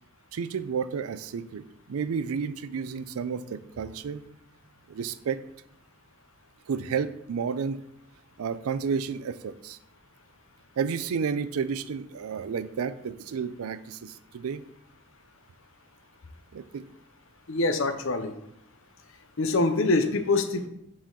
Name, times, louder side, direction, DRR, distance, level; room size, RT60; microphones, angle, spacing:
voice 1, 0.3-4.3 4.9-5.4 6.7-7.8 8.4-9.8 10.8-14.6 16.5-16.8, right 6 dB, 80° right, 14 dB, 0.4 m, -31 dB
voice 2, 17.5-18.3 19.4-20.7, left 3 dB, 60° left, 8 dB, 0.6 m, -24 dB
7.1 x 4.2 x 3.8 m, 0.77 s
head